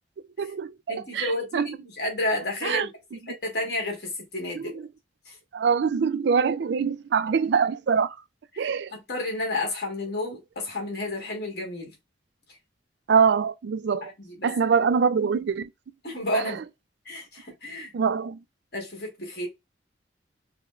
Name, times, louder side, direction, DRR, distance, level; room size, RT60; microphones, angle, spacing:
voice 1, 0.4-1.8 2.6-2.9 4.5-4.9 5.5-8.2 8.6-8.9 13.1-14.1 14.4-15.7 16.3-16.6 17.9-18.4, right 6 dB, 60° right, 0.3 m, -24 dB
voice 2, 0.9-2.9 3.4-4.7 5.3-5.4 8.5-8.7 9.1-11.9 14.4-14.5 16.0-16.6 17.0-17.9 18.7-19.5, left 1 dB, 55° left, 1.6 m, -31 dB
4.8 x 2.1 x 2.4 m
head